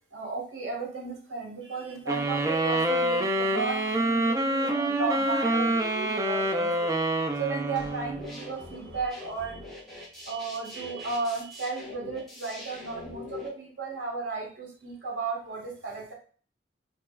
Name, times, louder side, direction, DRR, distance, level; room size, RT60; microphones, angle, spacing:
voice 1, 0.1-6.9 7.4-9.6 10.1-16.1, right 4 dB, 85° right, -2 dB, 1.4 m, -34 dB
sound 1, 2.1-8.5, right 1 dB, 20° right, 0.4 m, -27 dB
sound 2, 3.5-9.4, right 2 dB, 65° right, 1.6 m, -43 dB
sound 3, 8.0-13.5, left 3 dB, ahead, 1.2 m, -43 dB
4.6 x 2.9 x 2.3 m, 0.41 s
head